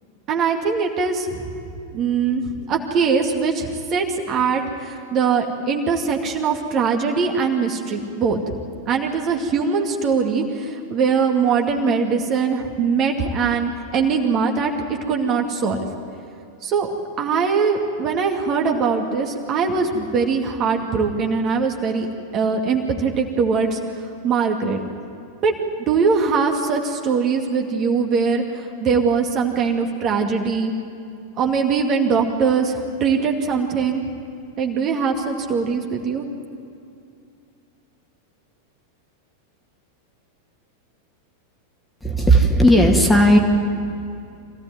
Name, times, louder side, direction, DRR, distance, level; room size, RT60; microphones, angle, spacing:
voice 1, 0.3-1.4 1.9-8.5 8.9-14.7 15.1-15.8 16.6-16.9 17.2-22.1 22.3-23.8 24.2-24.8 25.4-25.5 25.8-30.7 31.4-34.0 34.6-36.2, right 5 dB, 35° right, 2 dB, 2.3 m, -21 dB
voice 2, 42.0-43.4, equal, 5° left, 2 dB, 2.4 m, -14 dB
25.5 x 16.5 x 9.4 m, 2.5 s
figure-of-eight pair, 90°, 0 cm